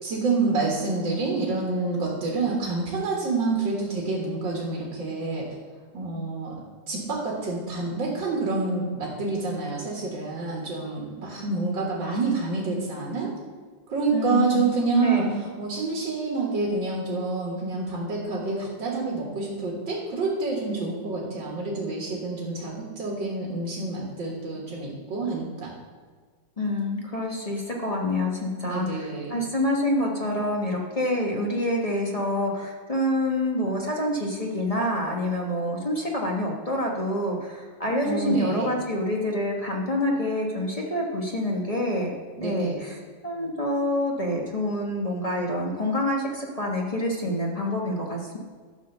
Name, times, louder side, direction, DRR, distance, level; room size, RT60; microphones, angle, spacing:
voice 1, 0.0-5.5 5.9-6.6 6.9-13.3 13.9-15.3 15.6-25.7 28.6-29.3 38.0-38.7 42.4-42.8, right 3 dB, 75° right, -3 dB, 2.4 m, -28 dB
voice 2, 14.1-15.4 26.6-42.1 42.4-48.4, left 1 dB, 25° left, -1 dB, 1.1 m, -27 dB
11.5 x 4.4 x 6.8 m, 1.5 s
omnidirectional pair, 2.1 m